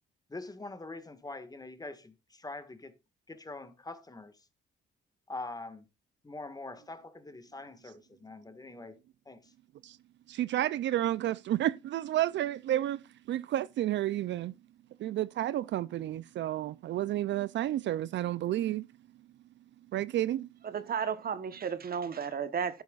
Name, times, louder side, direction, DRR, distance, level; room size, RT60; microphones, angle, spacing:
voice 1, 0.3-3.0 3.3-4.4 5.3-5.8 6.2-9.0 9.2-9.5, left 2 dB, 20° left, 1.7 m, -44 dB
voice 2, 10.3-13.0 13.3-14.5 15.0-18.8 19.9-20.5, right 13 dB, 65° right, 0.4 m, -31 dB
voice 3, 20.6-22.8, right 7 dB, 50° right, 1.1 m, -33 dB
12.0 x 10.5 x 2.4 m
cardioid pair, 90°, 20 cm